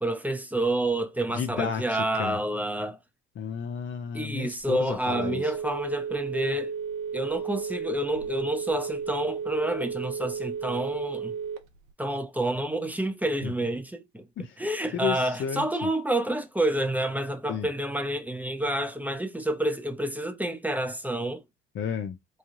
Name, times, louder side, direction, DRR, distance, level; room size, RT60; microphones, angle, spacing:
voice 1, 0.0-3.0 4.1-6.7 7.1-11.3 12.0-14.3 14.6-21.4, right 1 dB, 5° right, 0.7 m, -29 dB
voice 2, 1.3-2.4 3.4-5.5 13.4-13.5 14.4-14.6 14.9-15.9 17.5-17.7 21.7-22.2, left 7 dB, 35° left, 0.5 m, -32 dB
Telephone, 4.5-11.9, right 6 dB, 60° right, 0.8 m, -33 dB
3.2 x 2.3 x 2.6 m
hypercardioid pair, 70°, 32 cm